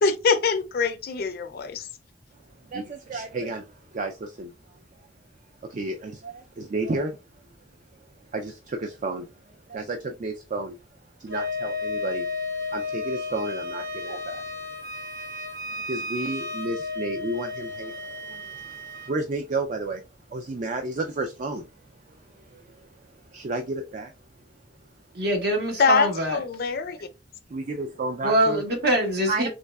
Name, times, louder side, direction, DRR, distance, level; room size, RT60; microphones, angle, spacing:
voice 1, 0.0-1.9 25.8-27.0, left 5 dB, 55° left, 0.5 m, -23 dB
voice 2, 2.6-5.1 5.6-7.2 8.3-9.3 9.7-10.8 11.2-12.3 12.7-14.4 15.6-20.0 20.3-21.7 22.1-24.1 27.5-28.6 29.3-29.5, right 2 dB, 45° right, 0.4 m, -32 dB
Wind instrument woodwind instrument, 11.3-19.1, left 3 dB, 85° right, 1.5 m, -33 dB
voice 3, 25.1-26.4 28.2-29.5, right 1 dB, 65° right, 1.2 m, -24 dB
3.7 x 3.1 x 2.3 m
head